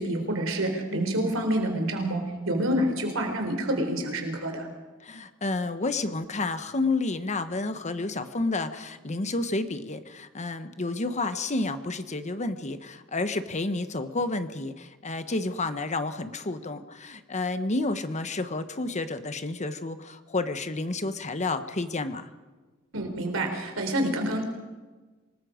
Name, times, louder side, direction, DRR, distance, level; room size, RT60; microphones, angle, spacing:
voice 1, 0.0-4.7 22.9-24.4, right 1 dB, 75° right, 4 dB, 3.8 m, -27 dB
voice 2, 5.0-22.3, left 2 dB, 35° left, 10 dB, 1.1 m, -30 dB
26.5 x 19.5 x 5.1 m, 1.3 s
head